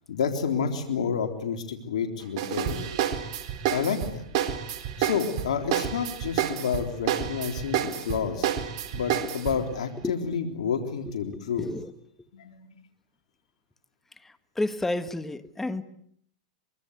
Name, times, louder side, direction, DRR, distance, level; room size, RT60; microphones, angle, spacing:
voice 1, 0.1-2.8 3.7-4.2 5.0-8.5 8.9-11.7 12.3-12.7, left 6 dB, 80° left, 3.7 m, -29 dB
sound 1, 2.4-9.6, right 9 dB, 55° right, 4.0 m, -29 dB
voice 2, 10.0-10.4 11.0-11.9 14.2-15.8, left 2 dB, 10° left, 1.6 m, -32 dB
24.5 x 24.0 x 8.1 m
hypercardioid pair, 125°, 4 cm